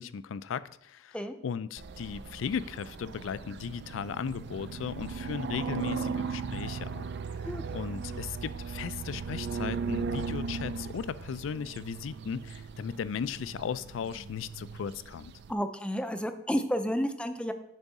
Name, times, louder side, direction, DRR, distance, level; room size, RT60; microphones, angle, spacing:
voice 1, 0.0-1.2 1.4-7.1 7.4-15.3, left 7 dB, 75° left, 16 dB, 0.3 m, -36 dB
sound 1, 1.8-15.5, right 5 dB, 60° right, 0.4 m, -37 dB
voice 2, 15.5-17.5, equal, 5° left, 8 dB, 0.4 m, -31 dB
10.5 x 3.6 x 4.1 m, 0.77 s
head